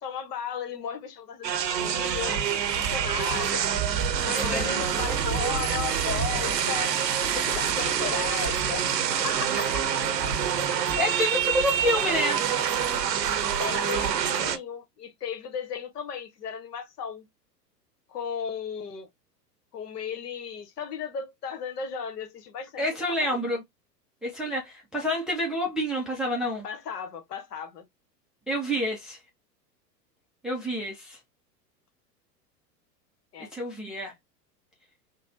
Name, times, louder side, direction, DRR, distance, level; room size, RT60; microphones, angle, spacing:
voice 1, 0.0-3.7 4.2-6.9 7.2-8.8 9.2-10.0 10.9-11.1 13.6-17.3 18.1-19.1 19.7-23.4 26.6-27.8 33.3-33.5, left 7 dB, 70° left, 1.1 m, -35 dB
sound 1, 1.4-14.6, right 8 dB, 75° right, 0.8 m, -26 dB
voice 2, 4.4-4.8 9.5-9.7 11.0-12.4 22.8-23.6 24.2-26.7 28.5-29.2 30.4-31.2 33.4-34.1, left 1 dB, ahead, 0.4 m, -28 dB
3.8 x 2.0 x 2.6 m
figure-of-eight pair, 100°, 50 cm